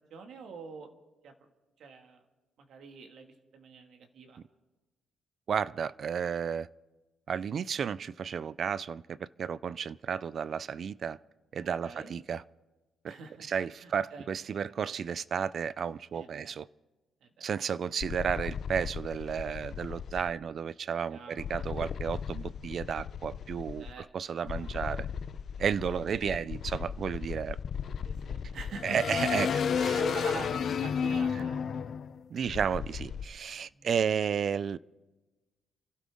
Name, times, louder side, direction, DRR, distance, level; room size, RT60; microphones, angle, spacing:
voice 1, 0.1-0.9 1.2-1.3 1.8-2.2 2.7-4.4 11.8-12.1 13.0-13.5 13.8-14.3 16.1-16.5 17.2-17.5 21.1-21.4 23.8-24.1 24.5-24.7 28.0-29.0 29.8-31.8 33.7-34.1, right 5 dB, 70° right, 2.0 m, -45 dB
voice 2, 5.5-6.7 7.3-11.2 11.5-12.4 13.0-16.7 17.4-25.1 25.6-27.6 28.8-30.0 32.3-34.8, right 7 dB, 55° right, 0.4 m, -33 dB
sound 1, 18.0-20.3 21.4-23.9 24.5-33.2, left 7 dB, 55° left, 0.6 m, -34 dB
29.5 x 12.5 x 3.7 m
cardioid pair, 90°, 0 cm